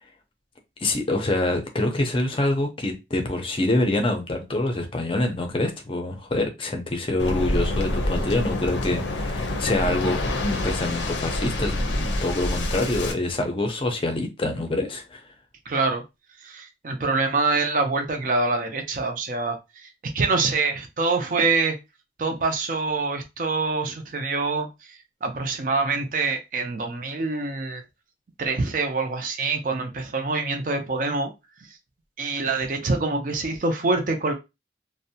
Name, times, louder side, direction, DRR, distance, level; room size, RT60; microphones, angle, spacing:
voice 1, 0.8-15.3, left 2 dB, 30° left, 0.5 m, -26 dB
Waves surf, 7.2-13.1, left 1 dB, 85° left, 0.5 m, -27 dB
voice 2, 15.7-16.0 16.4-19.6 20.1-21.8 22.2-24.7 25.2-27.8 28.4-31.3 32.2-34.3, right 3 dB, 45° right, 0.4 m, -25 dB
2.6 x 2.1 x 2.6 m
head